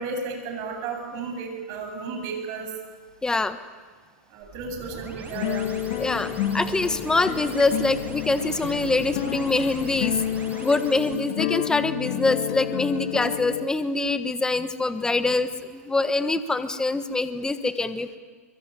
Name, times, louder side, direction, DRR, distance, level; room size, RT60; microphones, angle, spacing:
voice 1, 0.0-2.7 4.3-5.7, right 4 dB, 45° right, 5 dB, 8.0 m, -33 dB
voice 2, 3.2-3.6 6.0-10.2 10.6-18.2, left 3 dB, 10° left, 11 dB, 1.4 m, -24 dB
sound 1, 4.4-11.2, right 4 dB, 20° right, 7.0 m, -40 dB
sound 2, 5.3-13.7, left 11 dB, 55° left, 2.1 m, -30 dB
25.0 x 23.0 x 9.7 m, 1.5 s
hypercardioid pair, 110°, 8 cm